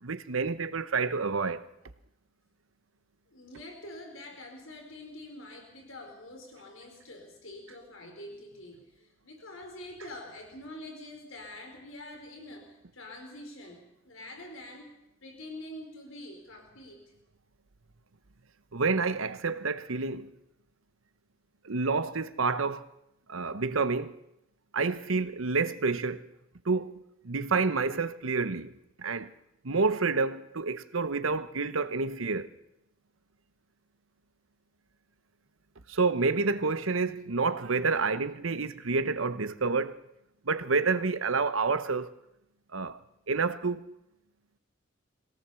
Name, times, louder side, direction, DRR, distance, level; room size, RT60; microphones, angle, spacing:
voice 1, 0.0-1.7 18.7-20.3 21.6-22.8 23.3-24.2 24.7-26.3 26.6-28.7 29.0-29.3 29.6-32.5 35.9-40.0 40.4-42.1 42.7-43.0 43.3-43.9, right 4 dB, 85° right, 1.0 m, -29 dB
voice 2, 3.3-14.9 15.2-17.0, left 1 dB, 80° left, 4.3 m, -46 dB
21.5 x 17.5 x 7.0 m
head